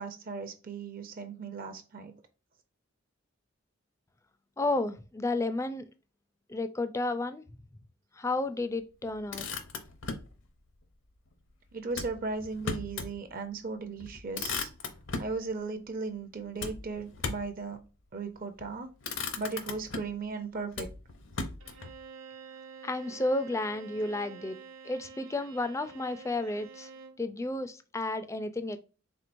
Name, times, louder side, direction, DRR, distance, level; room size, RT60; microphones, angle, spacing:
voice 1, 0.0-2.1 11.7-14.7 15.2-17.8 18.1-18.9 19.4-20.9, right 4 dB, 40° right, 0.5 m, -37 dB
voice 2, 4.6-5.8 6.5-7.4 8.2-9.5 22.8-24.6 24.8-26.9 27.2-28.8, left 2 dB, 15° left, 0.3 m, -32 dB
Motor vehicle (road), 9.1-10.3 11.9-13.2 13.6-13.7 14.0-15.4 16.6-17.6 18.4-18.7 19.0-20.2 20.7-21.9, left 4 dB, 65° left, 0.7 m, -37 dB
Bowed string instrument, 21.6-27.3, right 6 dB, 65° right, 1.1 m, -49 dB
4.4 x 3.7 x 2.5 m
head